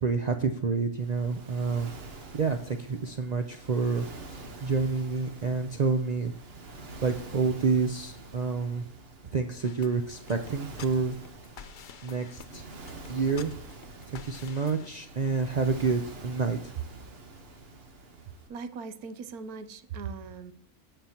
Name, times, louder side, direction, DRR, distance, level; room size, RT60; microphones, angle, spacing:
voice 1, 0.0-1.9 2.3-6.3 7.0-8.8 9.3-11.2 12.0-12.6 13.1-13.5 14.1-16.7, right 4 dB, 70° right, 6 dB, 0.4 m, -28 dB
Waves surf, 1.0-18.5, right 2 dB, 45° right, 1.3 m, -46 dB
sound 1, 9.6-14.9, left 7 dB, 60° left, 0.5 m, -48 dB
voice 2, 18.5-20.5, right 5 dB, 85° right, 12 dB, 1.2 m, -39 dB
16.0 x 5.6 x 2.9 m, 0.64 s
omnidirectional pair, 1.5 m